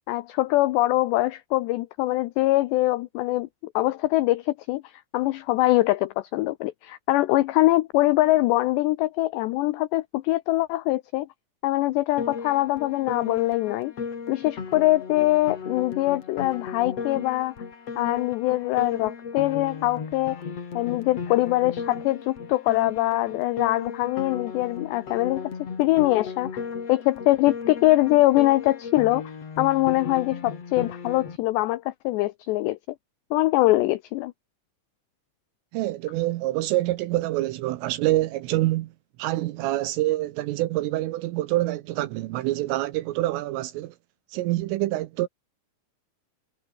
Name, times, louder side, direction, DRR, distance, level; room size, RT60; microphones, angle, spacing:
voice 1, 0.1-3.5 3.8-4.8 5.1-11.3 11.6-13.9 14.3-17.5 18.0-20.4 20.7-25.5 25.8-26.5 26.9-29.3 29.6-32.8 33.3-34.3, left 18 dB, 90° left, 2.4 m, -23 dB
Piano, 12.2-31.4, left 6 dB, 35° left, 3.5 m, -36 dB
voice 2, 35.7-38.9 39.2-44.0 44.3-45.3, right 16 dB, 80° right, 3.5 m, -26 dB
omnidirectional pair, 5.9 m